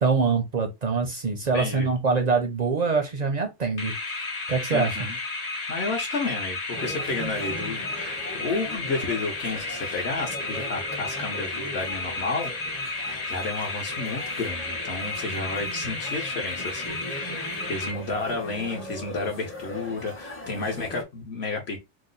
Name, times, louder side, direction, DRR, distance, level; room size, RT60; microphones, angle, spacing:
voice 1, 0.0-5.0, right 4 dB, 50° right, 0.5 m, -25 dB
voice 2, 1.5-1.9 4.7-5.2 5.7-21.8, left 3 dB, 60° left, 1.0 m, -32 dB
sound 1, 3.8-18.4, left 3 dB, 35° left, 0.8 m, -33 dB
sound 2, 6.7-21.0, equal, 15° left, 0.5 m, -40 dB
2.9 x 2.0 x 3.8 m
omnidirectional pair, 1.3 m